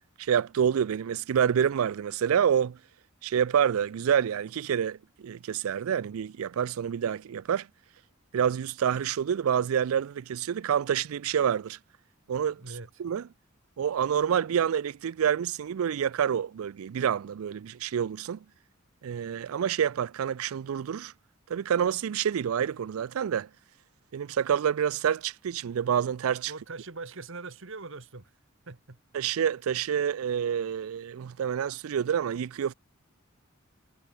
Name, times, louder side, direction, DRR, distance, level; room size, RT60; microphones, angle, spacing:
voice 1, 0.2-2.8 3.2-7.7 8.3-11.8 12.3-12.6 13.0-13.2 13.8-18.4 19.0-21.1 21.5-23.5 24.1-26.5 29.1-32.7, right 8 dB, 90° right, 0.4 m, -27 dB
voice 2, 12.6-13.0 26.5-28.3 28.7-29.0, right 3 dB, 65° right, 1.5 m, -42 dB
head